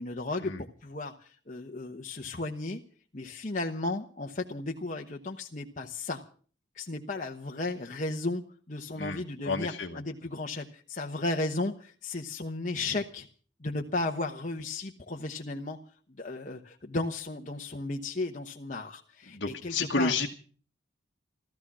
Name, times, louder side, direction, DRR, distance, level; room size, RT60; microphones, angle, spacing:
voice 1, 0.0-2.8 3.1-6.2 6.7-8.4 8.7-13.3 13.6-15.8 16.2-20.1, left 2 dB, 40° left, 1 dB, 1.1 m, -34 dB
voice 2, 8.9-10.0 19.3-20.3, left 3 dB, 60° left, 2 dB, 1.3 m, -31 dB
15.0 x 14.0 x 6.1 m, 0.43 s
head